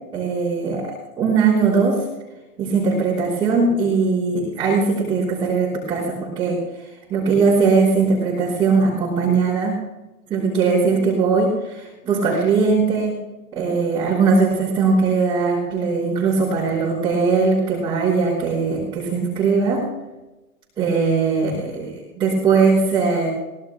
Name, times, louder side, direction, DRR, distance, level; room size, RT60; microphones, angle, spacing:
voice 1, 0.1-2.0 2.6-6.6 7.1-9.8 10.3-13.1 13.5-19.9 20.8-23.3, right 4 dB, 10° right, -7 dB, 3.7 m, -20 dB
23.0 x 16.5 x 2.2 m, 1.0 s
hypercardioid pair, 150°, 46 cm